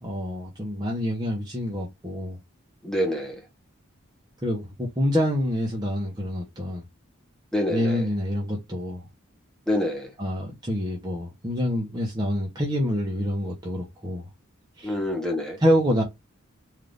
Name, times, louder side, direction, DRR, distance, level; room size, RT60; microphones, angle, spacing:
voice 1, 0.0-2.4 4.4-6.8 7.7-9.0 10.2-14.2 14.8-14.9 15.6-16.0, equal, 20° right, 0.9 m, -26 dB
voice 2, 2.8-3.4 7.5-8.0 9.7-10.1 14.8-15.6, left 1 dB, 5° left, 1.1 m, -26 dB
3.8 x 2.7 x 3.4 m
head